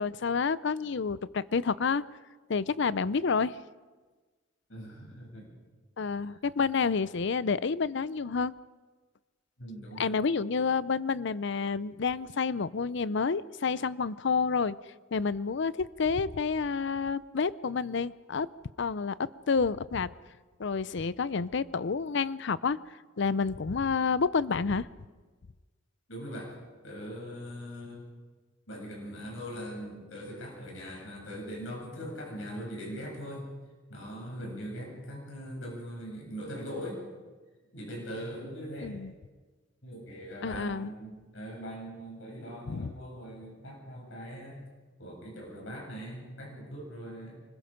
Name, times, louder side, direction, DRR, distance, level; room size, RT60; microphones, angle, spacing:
voice 1, 0.0-2.0 2.5-3.6 6.0-8.5 10.0-14.8 15.1-18.5 18.8-19.1 19.5-20.1 20.6-22.8 23.2-24.9 38.8-39.1 40.4-40.9 42.7-42.9, left 5 dB, 65° left, 18 dB, 0.6 m, -29 dB
voice 2, 4.7-5.4 9.6-10.1 26.1-26.5 26.8-28.0 28.7-33.5 33.9-37.0 37.7-38.9 39.8-44.6 45.0-47.4, equal, 80° left, -2 dB, 7.9 m, -41 dB
25.0 x 21.0 x 5.2 m, 1.3 s
head